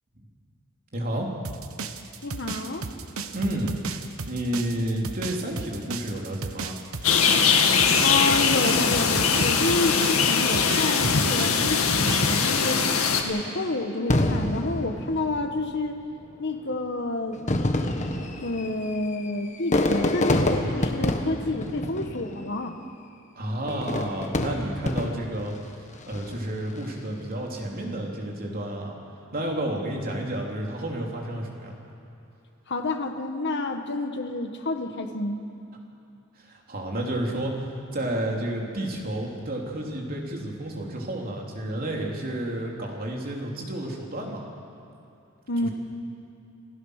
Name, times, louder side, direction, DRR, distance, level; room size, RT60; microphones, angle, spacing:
voice 1, 0.9-1.3 3.3-3.7 4.3-6.8 23.4-25.5 26.1-29.0 29.3-31.8 36.4-44.5 45.6-45.7, right 1 dB, 45° right, -1 dB, 3.5 m, -31 dB
sound 1, 1.4-12.4, right 4 dB, 80° right, 1.2 m, -34 dB
voice 2, 2.2-2.9 8.0-12.9 13.2-16.0 16.4-17.4 18.4-22.8 32.7-35.4 45.5-45.7, left 2 dB, 55° left, 5 dB, 1.4 m, -29 dB
sound 2, 7.0-13.2, left 5 dB, 85° left, 1.8 m, -21 dB
Fireworks, 14.1-15.7 16.6-16.7 17.3-22.6 23.7-25.5 26.0-26.5, left 1 dB, 35° left, 1.4 m, -27 dB
28.0 x 16.0 x 6.6 m, 2.8 s
head